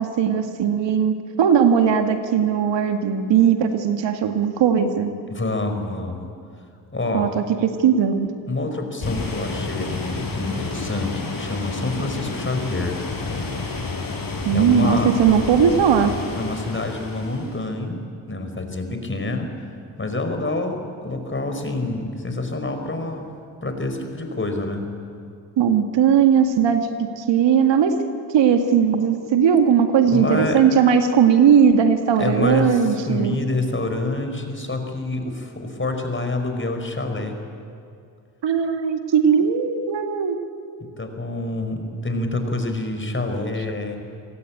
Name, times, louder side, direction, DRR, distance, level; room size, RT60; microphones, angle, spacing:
voice 1, 0.0-5.1 7.1-7.4 7.8-8.3 14.4-16.1 25.6-28.0 28.3-33.4 38.4-40.4, right 7 dB, 65° right, 6 dB, 2.0 m, -18 dB
voice 2, 5.3-6.3 6.9-7.3 8.5-13.0 14.5-15.1 16.3-18.0 18.3-19.7 20.0-23.3 23.6-24.9 30.0-30.6 32.2-37.4 40.8-44.0, left 2 dB, 25° left, 5 dB, 5.0 m, -27 dB
sound 1, 9.0-17.7, left 3 dB, 45° left, 7.0 m, -30 dB
26.5 x 17.5 x 8.9 m, 2.4 s
hypercardioid pair, 50°, 46 cm